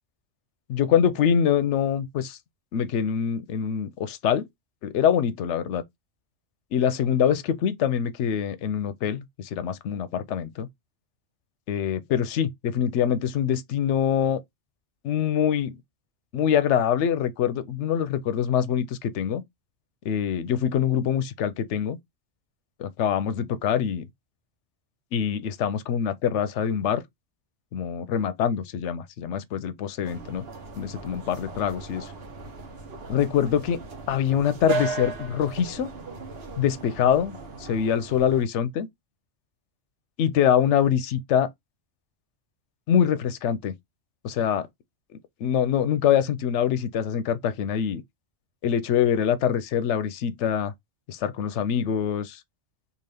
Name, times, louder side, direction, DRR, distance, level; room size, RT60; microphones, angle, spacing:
voice 1, 0.7-2.4 2.7-4.5 4.8-5.8 6.7-10.7 11.7-14.4 15.0-15.8 16.3-19.4 20.0-22.0 22.8-24.1 25.1-27.0 27.7-30.4 30.8-32.1 33.1-33.8 34.1-35.9 36.6-38.9 40.2-41.5 42.9-43.7 44.2-44.7 45.4-48.0 48.6-50.7 51.1-52.4, left 8 dB, 90° left, 0.9 m, -24 dB
sound 1, 30.0-38.4, right 4 dB, 60° right, 1.1 m, -36 dB
3.8 x 2.4 x 3.3 m
omnidirectional pair, 1.2 m